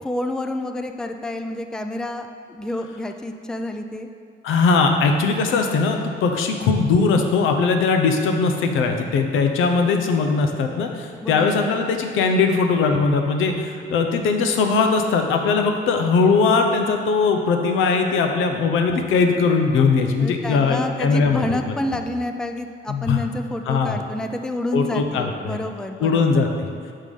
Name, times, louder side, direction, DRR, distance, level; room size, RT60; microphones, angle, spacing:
voice 1, 0.0-4.1 11.2-11.8 20.2-26.2, left 1 dB, 5° left, 6 dB, 0.4 m, -29 dB
voice 2, 4.4-21.6 22.9-23.2 23.6-24.0 24.7-25.6 26.0-26.5, left 4 dB, 85° left, 4 dB, 0.7 m, -20 dB
5.6 x 4.9 x 5.3 m, 2.3 s
cardioid pair, 90°, 20 cm